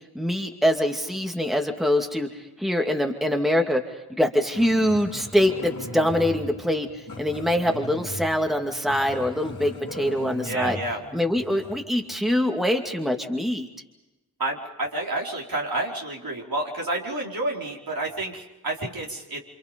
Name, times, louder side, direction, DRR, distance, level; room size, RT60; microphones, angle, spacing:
voice 1, 0.1-3.8 4.1-10.8 11.1-13.7, equal, ahead, 3 dB, 2.4 m, -24 dB
Growling, 4.5-11.8, left 2 dB, 60° left, 3.9 m, -39 dB
voice 2, 10.4-11.0 14.4-19.4, right 2 dB, 70° right, -2 dB, 4.6 m, -29 dB
28.5 x 27.0 x 5.3 m, 1.0 s
wide cardioid pair, 50°, 37 cm